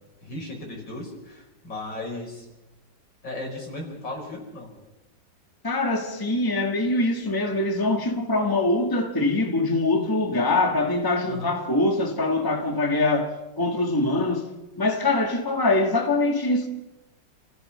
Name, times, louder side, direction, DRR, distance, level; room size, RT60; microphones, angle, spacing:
voice 1, 0.2-2.5 3.2-4.7 11.3-11.6, left 2 dB, 75° left, 5.8 m, -36 dB
voice 2, 5.6-14.5 14.8-16.7, left 2 dB, 10° left, 1.8 m, -23 dB
28.5 x 15.5 x 5.7 m
omnidirectional pair, 2.0 m